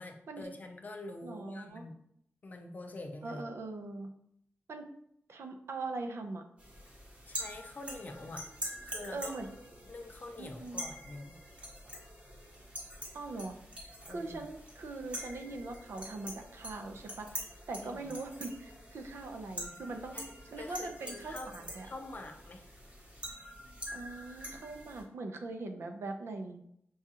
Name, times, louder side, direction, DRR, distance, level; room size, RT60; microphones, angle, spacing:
voice 1, 0.0-1.9 2.4-3.5 7.3-8.5 8.8-9.4 9.9-11.4 14.1-14.5 17.8-18.1 20.1-20.3 20.6-22.6, left 2 dB, 40° left, 4 dB, 0.5 m, -46 dB
voice 2, 1.2-1.8 3.2-4.1 4.7-4.9 5.3-6.4 9.1-9.5 10.4-10.8 13.1-13.6 14.1-17.3 17.7-20.2 20.5-21.9 23.9-26.7, right 3 dB, 70° right, 4 dB, 0.5 m, -41 dB
sound 1, 6.6-25.0, equal, 25° right, 1.0 m, -45 dB
6.0 x 2.4 x 2.8 m, 0.71 s
wide cardioid pair, 170°, 5 cm